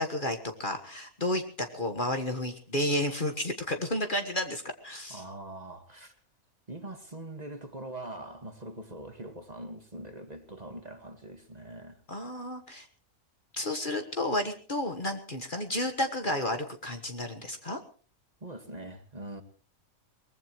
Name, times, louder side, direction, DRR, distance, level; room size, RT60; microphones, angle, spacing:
voice 1, 0.0-5.2 12.1-12.8 13.5-17.8, left 1 dB, 35° left, 5 dB, 1.6 m, -31 dB
voice 2, 5.1-6.1 6.7-12.0 18.4-19.4, right 1 dB, 30° right, 6 dB, 1.8 m, -43 dB
23.0 x 20.0 x 3.1 m, 0.39 s
omnidirectional pair, 1.5 m